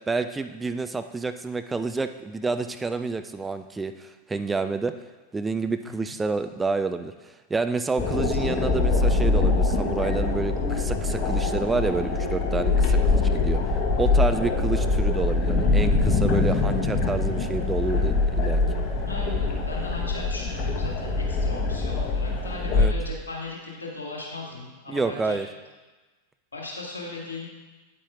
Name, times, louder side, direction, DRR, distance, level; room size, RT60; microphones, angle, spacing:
voice 1, 0.0-4.9 5.3-13.6 14.0-18.6 22.7-22.9 24.9-25.5, right 4 dB, 10° right, 9 dB, 0.3 m, -29 dB
voice 2, 8.0-8.4 19.1-25.4 26.5-27.5, left 3 dB, 75° left, -2 dB, 1.8 m, -37 dB
sound 1, 8.0-22.8, left 3 dB, 35° left, 1.0 m, -23 dB
9.1 x 8.4 x 2.4 m, 1.2 s
figure-of-eight pair, 90°, 0 cm